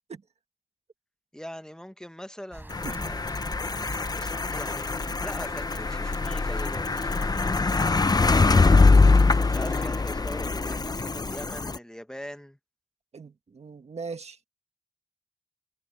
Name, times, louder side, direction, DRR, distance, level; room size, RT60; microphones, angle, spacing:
voice 1, 1.3-3.2 4.1-7.9 8.8-12.6, equal, 5° left, 1.2 m, -42 dB
sound 1, 2.5-8.7, right 1 dB, 20° right, 4.1 m, -46 dB
sound 2, 2.7-11.8, left 3 dB, 40° left, 0.7 m, -23 dB
voice 2, 2.8-3.2 13.1-14.5, right 4 dB, 80° right, 1.6 m, -40 dB
sound 3, 3.9-10.0, right 2 dB, 35° right, 4.8 m, -57 dB
wide cardioid pair, 70°, 11 cm